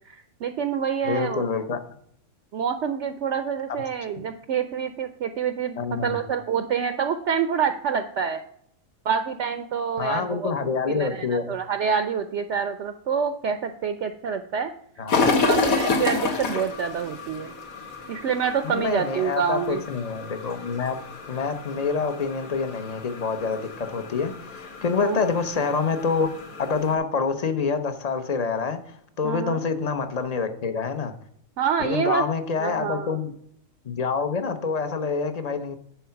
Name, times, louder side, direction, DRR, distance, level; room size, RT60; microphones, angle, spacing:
voice 1, 0.1-1.5 2.5-8.4 9.0-10.5 10.9-14.7 15.2-17.5 18.1-19.8 25.0-25.2 29.2-29.6 31.6-32.3 32.6-33.2, right 7 dB, 65° right, 9 dB, 0.8 m, -27 dB
voice 2, 1.0-1.8 5.8-6.2 10.0-11.5 15.0-15.5 18.6-21.0 21.3-26.3 26.6-31.1 31.8-33.3 33.8-35.8, left 5 dB, 35° left, 9 dB, 0.7 m, -27 dB
sound 1, 15.1-27.0, left 4 dB, 90° left, 1.7 m, -30 dB
10.0 x 4.3 x 5.7 m, 0.70 s
omnidirectional pair, 1.4 m